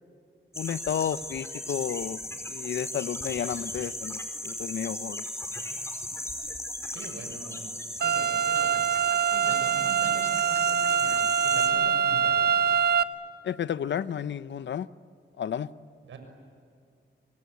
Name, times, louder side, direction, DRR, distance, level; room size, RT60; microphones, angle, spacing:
voice 1, 0.5-2.2 2.5-5.3 13.4-14.9 15.4-15.7, left 9 dB, 65° left, 15 dB, 0.8 m, -32 dB
sound 1, 0.5-11.7, left 1 dB, 15° left, 5.1 m, -37 dB
voice 2, 6.9-7.7 8.0-8.8 9.1-12.5 16.0-16.2, right 3 dB, 80° right, 6 dB, 6.6 m, -43 dB
sound 2, 8.0-13.0, right 8 dB, 55° right, 1.1 m, -24 dB
27.5 x 25.0 x 8.5 m, 2.3 s
cardioid pair, 85°, 20 cm